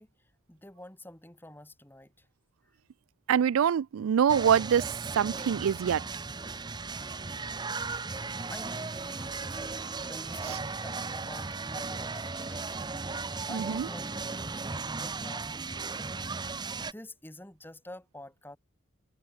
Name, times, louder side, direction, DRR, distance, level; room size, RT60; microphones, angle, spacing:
voice 1, 0.0-2.3 2.6-2.7 7.9-8.1 8.5-13.0 13.5-16.2 16.8-18.6, left 1 dB, 10° left, 3.9 m, -48 dB
voice 2, 3.3-6.0 13.5-13.9, right 8 dB, 85° right, 0.3 m, -25 dB
sound 1, 4.3-16.9, right 4 dB, 20° right, 0.9 m, -36 dB
sound 2, 6.9-14.1, right 7 dB, 40° right, 4.7 m, -55 dB
head